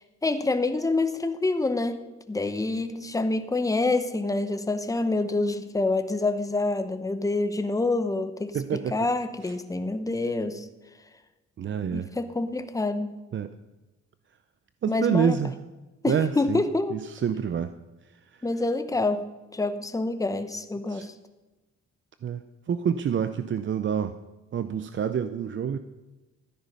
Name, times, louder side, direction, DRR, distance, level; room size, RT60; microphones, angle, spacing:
voice 1, 0.2-2.0 2.3-10.6 11.9-13.1 14.9-15.4 16.0-17.0 18.4-19.3 19.5-21.1, left 2 dB, 10° left, 9 dB, 0.9 m, -27 dB
voice 2, 8.5-9.1 9.4-9.5 11.6-12.1 13.3-13.5 14.8-15.5 16.1-16.6 16.9-17.7 18.3-18.5 20.9-21.1 22.2-24.1 24.5-25.8, right 7 dB, 40° right, 11 dB, 0.6 m, -27 dB
13.0 x 9.9 x 5.6 m, 1.1 s
cardioid pair, 90°, 30 cm